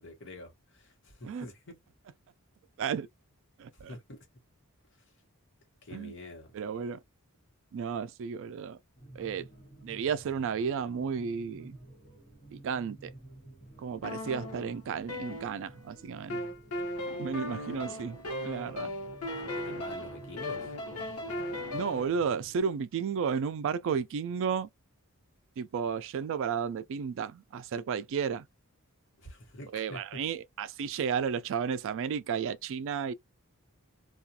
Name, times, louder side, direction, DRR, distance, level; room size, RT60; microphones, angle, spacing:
voice 1, 0.0-1.8 3.7-4.2 5.8-6.5 19.5-20.7 21.2-21.6 29.2-30.2, left 1 dB, 60° left, 1.1 m, -47 dB
voice 2, 2.8-3.1 3.6-4.0 5.9-6.1 6.5-7.0 7.7-8.8 9.1-9.5 9.8-11.8 12.5-13.1 13.8-16.4 17.2-18.2 18.4-18.9 21.7-24.7 25.6-28.5 29.7-33.1, right 6 dB, 60° right, 0.3 m, -33 dB
sound 1, 9.0-22.6, right 1 dB, 35° left, 1.4 m, -53 dB
sound 2, 14.0-15.9 16.3-22.1, left 1 dB, 80° left, 0.9 m, -37 dB
2.4 x 2.3 x 2.7 m
head